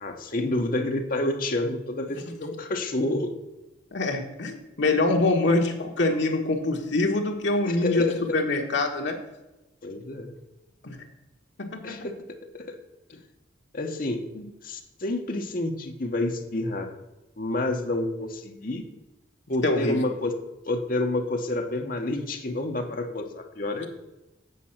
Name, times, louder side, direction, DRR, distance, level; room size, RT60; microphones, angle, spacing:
voice 1, 0.0-3.3 7.6-8.4 9.8-10.3 11.8-12.1 12.5-12.8 13.7-14.2 14.6-16.9 17.4-18.8 19.5-20.3 20.6-23.9, left 2 dB, 45° left, 4 dB, 1.1 m, -29 dB
voice 2, 3.9-9.2 10.8-11.0 11.6-12.1 14.3-14.4 19.6-20.0, left 2 dB, 65° left, 2 dB, 1.5 m, -25 dB
8.3 x 5.5 x 5.8 m, 1.0 s
head